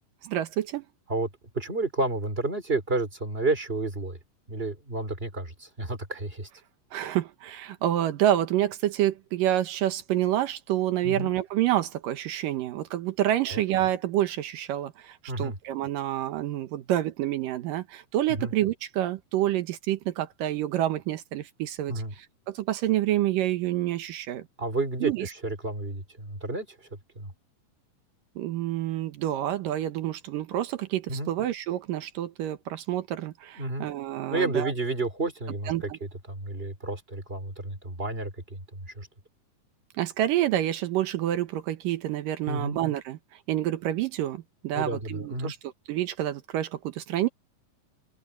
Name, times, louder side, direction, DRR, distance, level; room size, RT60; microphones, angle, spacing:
voice 1, 0.2-0.9 6.9-21.9 22.5-24.4 25.0-25.3 28.4-34.7 35.7-36.0 40.0-43.2 43.5-45.6 45.9-47.3, right 13 dB, 75° right, 2.7 m, -28 dB
voice 2, 1.5-4.2 4.5-6.5 11.0-11.3 13.5-13.6 15.3-15.6 18.3-18.5 21.9-22.1 24.6-26.9 27.2-27.3 31.1-31.3 33.6-33.9 34.3-35.9 36.3-39.1 42.5-42.8 44.7-45.5, right 2 dB, 15° right, 3.6 m, -31 dB
open air
omnidirectional pair, 4.1 m